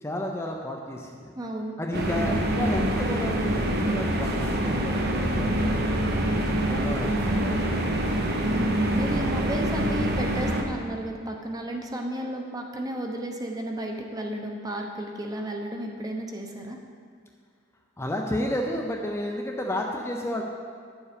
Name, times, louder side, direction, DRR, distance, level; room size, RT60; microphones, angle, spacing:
voice 1, 0.0-1.4 1.8-6.0 6.7-7.8 18.0-20.4, left 1 dB, 15° left, 1 dB, 0.6 m, -32 dB
voice 2, 1.4-2.0 8.5-16.8, right 1 dB, 20° right, 2 dB, 0.9 m, -33 dB
sound 1, 1.9-10.6, right 1 dB, 55° right, 1.0 m, -25 dB
9.6 x 7.2 x 5.1 m, 2.1 s
head